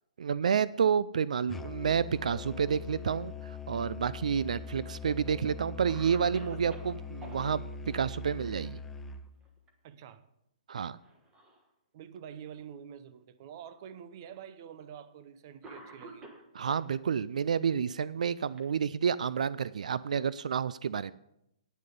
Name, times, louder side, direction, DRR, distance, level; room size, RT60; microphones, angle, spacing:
voice 1, 0.2-8.8 10.7-11.0 16.6-21.1, right 7 dB, 80° right, 0.4 m, -30 dB
Musical instrument, 1.5-9.3, left 4 dB, 5° left, 0.4 m, -42 dB
Cough, 4.1-4.9 5.4-5.5 5.9-7.4 9.3-9.7 10.0-10.1 11.0-11.7 12.4-12.5 13.6-13.7 14.8-15.0 15.6-16.9 17.8-19.3, right 2 dB, 15° right, 1.3 m, -51 dB
voice 2, 9.8-10.2 11.9-16.4, right 8 dB, 35° right, 0.6 m, -47 dB
9.6 x 9.5 x 5.2 m
hypercardioid pair, 170°, 4 cm